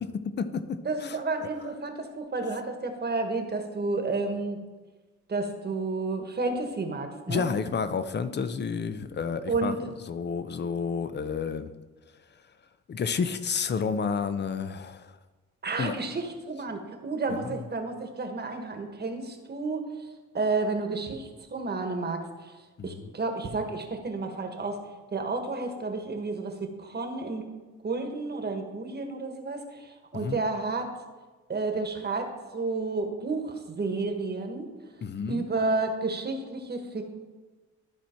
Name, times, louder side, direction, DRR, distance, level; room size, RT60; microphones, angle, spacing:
voice 1, 0.0-1.2 7.3-9.7 10.1-11.7 12.9-15.2 15.8-16.0 17.3-17.6 22.8-23.1 30.1-30.4 35.0-35.4, left 6 dB, 35° left, 12 dB, 0.6 m, -30 dB
voice 2, 0.8-4.6 5.3-7.5 9.5-9.8 15.6-20.0 20.3-22.5 22.8-24.8 25.1-27.5 27.8-30.9 31.5-34.7 35.3-37.0, right 3 dB, 35° right, 5 dB, 1.3 m, -31 dB
13.0 x 4.4 x 4.4 m, 1.3 s
cardioid pair, 90°, 30 cm